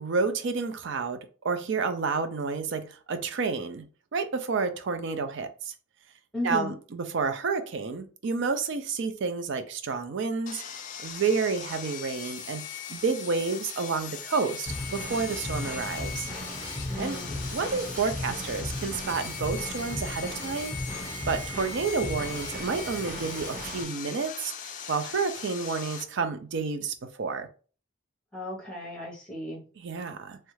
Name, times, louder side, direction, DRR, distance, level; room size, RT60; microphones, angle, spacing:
voice 1, 0.0-3.9 4.1-5.7 6.4-10.6 11.0-16.3 16.6-17.2 17.5-20.8 21.3-27.5 29.8-30.4, right 4 dB, 60° right, 0.4 m, -30 dB
voice 2, 6.3-6.7 16.9-17.7 28.3-29.6, left 1 dB, 5° left, 0.8 m, -35 dB
Sawing, 10.5-26.0, left 7 dB, 40° left, 0.3 m, -40 dB
Drum kit / Drum, 14.7-23.8, equal, 20° right, 1.1 m, -36 dB
3.1 x 2.4 x 3.1 m
head